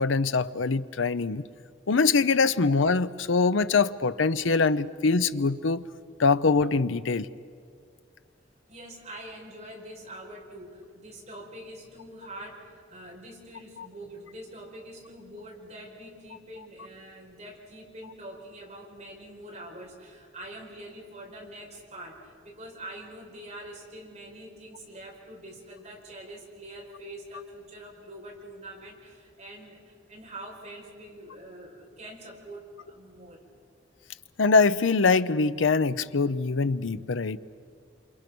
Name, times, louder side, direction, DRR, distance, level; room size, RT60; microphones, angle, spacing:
voice 1, 0.0-1.4 1.9-5.8 6.2-7.3 34.4-37.4, left 4 dB, 85° left, 14 dB, 0.7 m, -23 dB
voice 2, 8.7-33.4, right 1 dB, 35° right, -2 dB, 5.4 m, -44 dB
28.0 x 27.5 x 6.2 m, 2.2 s
head